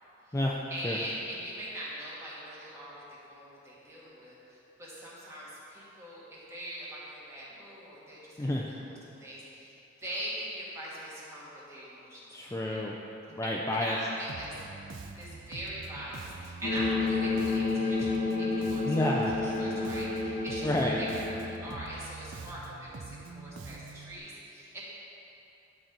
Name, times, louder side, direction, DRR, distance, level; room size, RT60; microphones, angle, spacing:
voice 1, 0.7-8.9 9.2-12.8 13.7-14.5 15.2-19.1 19.4-24.8, equal, 15° right, -7 dB, 1.7 m, -42 dB
voice 2, 12.3-13.0 13.4-14.0 18.8-19.4 20.6-21.0, left 1 dB, 15° left, -2 dB, 0.4 m, -29 dB
Bass guitar, 14.3-24.2, right 4 dB, 75° right, 0.5 m, -45 dB
sound 1, 16.6-21.7, left 3 dB, 50° left, 0.9 m, -30 dB
12.0 x 4.3 x 3.9 m, 3.0 s
head